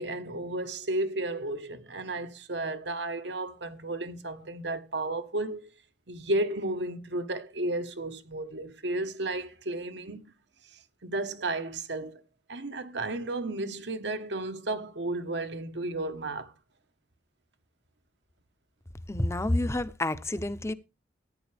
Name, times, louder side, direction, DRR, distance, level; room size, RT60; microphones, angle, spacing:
voice 1, 0.0-5.7 6.1-10.2 11.0-12.2 12.5-16.5, right 2 dB, 80° right, 1.3 m, -33 dB
voice 2, 19.1-20.7, left 1 dB, 15° left, 0.7 m, -29 dB
14.5 x 9.7 x 3.4 m
head